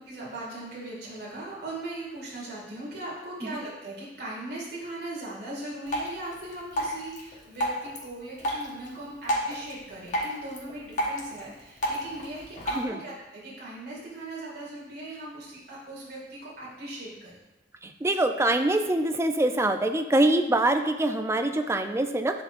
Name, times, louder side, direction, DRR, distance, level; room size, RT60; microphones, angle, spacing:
voice 1, 0.1-17.4, right 1 dB, 60° right, -6 dB, 2.1 m, -39 dB
Drip, 5.9-12.9, equal, 45° left, 1.2 m, -33 dB
voice 2, 17.8-22.4, right 1 dB, 15° right, 6 dB, 0.4 m, -24 dB
10.5 x 4.5 x 2.5 m, 0.99 s
head